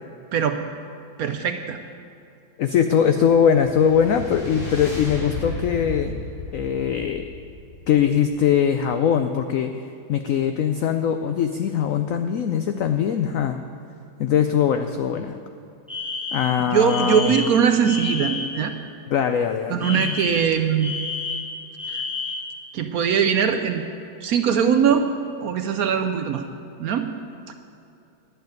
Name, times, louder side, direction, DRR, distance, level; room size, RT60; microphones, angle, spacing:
voice 1, 1.2-1.8 16.6-18.7 19.7-21.0 21.9-22.0 22.7-23.8 24.2-25.1 25.4-26.4 26.8-27.1 27.5-27.6, right 7 dB, 65° right, 7 dB, 0.9 m, -21 dB
voice 2, 2.6-6.2 6.5-7.2 7.9-9.7 10.1-13.6 14.2-15.4 16.3-17.3 19.1-20.1, left 8 dB, 80° left, 7 dB, 0.7 m, -21 dB
sound 1, 3.2-8.5, left 2 dB, 40° left, 2.6 m, -34 dB
Alarm, 15.9-18.6 19.8-22.5, left 4 dB, ahead, 1.1 m, -30 dB
11.5 x 6.9 x 9.3 m, 2.6 s
omnidirectional pair, 2.0 m